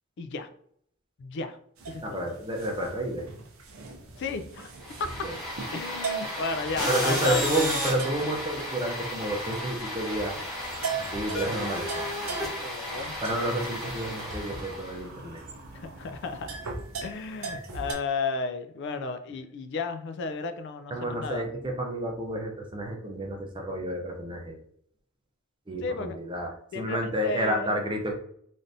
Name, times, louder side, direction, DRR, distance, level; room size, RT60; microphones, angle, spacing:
voice 1, 0.2-0.5 1.2-1.6 1.9-2.3 4.2-4.7 5.0-5.3 5.7-7.5 12.6-13.2 15.7-16.6 17.0-21.5 25.8-26.2 26.7-27.8, left 4 dB, 55° left, 9 dB, 0.3 m, -33 dB
sound 1, 1.8-17.9, right 5 dB, 70° right, 0.6 m, -40 dB
voice 2, 2.0-3.3 5.2-5.4 6.9-10.4 11.0-12.1 13.2-15.4 17.5-17.7 20.9-24.6 25.7-28.1, right 1 dB, 25° right, 1 dB, 0.6 m, -30 dB
sound 2, 4.8-15.0, equal, 5° left, 1.1 m, -33 dB
sound 3, 12.9-17.2, right 1 dB, 55° right, 1.0 m, -49 dB
3.3 x 2.6 x 2.6 m, 0.66 s
head